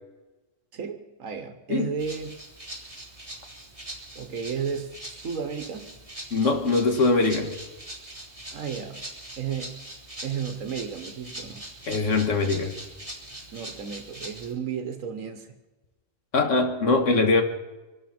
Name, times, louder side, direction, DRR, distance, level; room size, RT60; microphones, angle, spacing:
voice 1, 0.7-2.4 4.1-5.0 5.2-6.0 8.5-9.0 9.4-9.9 10.2-11.6 13.5-15.6, right 6 dB, 85° right, 7 dB, 1.5 m, -33 dB
Rattle (instrument), 2.0-14.5, right 1 dB, 25° right, 3.7 m, -42 dB
voice 2, 6.3-7.5 11.9-12.7 16.3-17.4, left 3 dB, 70° left, 4 dB, 2.0 m, -22 dB
25.0 x 12.5 x 4.4 m, 1.1 s
omnidirectional pair, 1.4 m